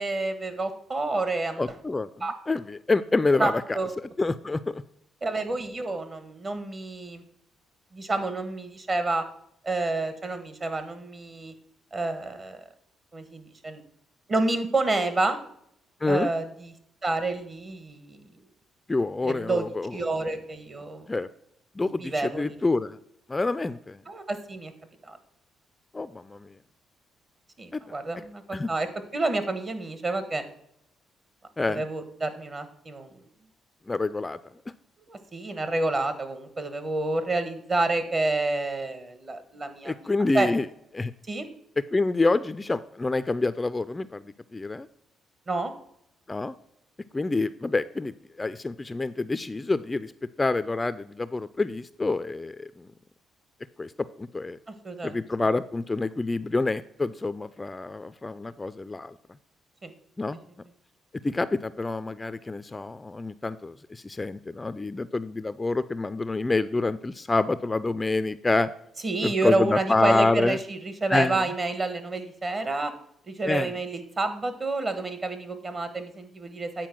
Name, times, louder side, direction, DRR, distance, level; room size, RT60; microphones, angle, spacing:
voice 1, 0.0-1.7 2.2-2.3 3.4-4.0 5.2-7.2 7.9-9.2 9.6-11.5 11.9-12.6 13.1-13.8 14.3-15.4 16.1-16.7 17.0-18.2 19.2-19.6 19.9-21.1 22.0-22.6 24.1-24.7 25.0-25.2 27.6-28.9 29.1-30.4 31.7-33.2 35.1-40.0 40.3-40.5 41.3-41.4 45.5-45.7 54.8-55.2 59.8-59.9 69.0-72.9 73.3-76.9, right 2 dB, 35° right, 10 dB, 1.2 m, -29 dB
voice 2, 1.6-3.8 4.2-4.8 16.0-16.3 18.9-20.0 21.1-21.3 21.8-23.0 23.3-24.0 25.9-26.6 27.7-28.0 28.5-28.7 31.6-31.9 33.9-34.4 39.8-40.7 40.9-41.1 41.8-44.9 46.3-46.5 47.1-50.1 50.4-52.9 53.8-54.6 55.0-59.2 60.2-60.4 61.2-68.7 69.2-70.6 71.1-71.5 73.4-73.7, left 3 dB, 20° left, 14 dB, 0.3 m, -27 dB
9.1 x 4.4 x 6.1 m, 0.73 s
cardioid pair, 90°, 0 cm